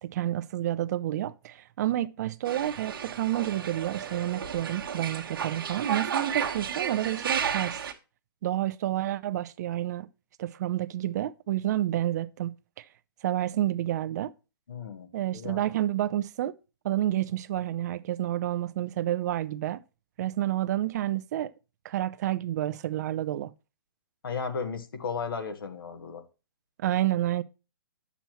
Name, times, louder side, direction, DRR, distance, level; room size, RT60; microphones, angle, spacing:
voice 1, 0.0-7.8 8.4-10.1 10.4-12.8 13.2-14.3 15.1-16.5 16.8-19.8 20.2-21.5 21.8-23.5 26.8-27.4, right 13 dB, 45° right, 0.5 m, -29 dB
sound 1, 2.5-7.9, right 7 dB, 65° right, 1.2 m, -33 dB
voice 2, 14.7-15.6 24.2-26.2, left 5 dB, 70° left, 1.4 m, -35 dB
9.1 x 7.0 x 3.0 m
hypercardioid pair, 130°, 12 cm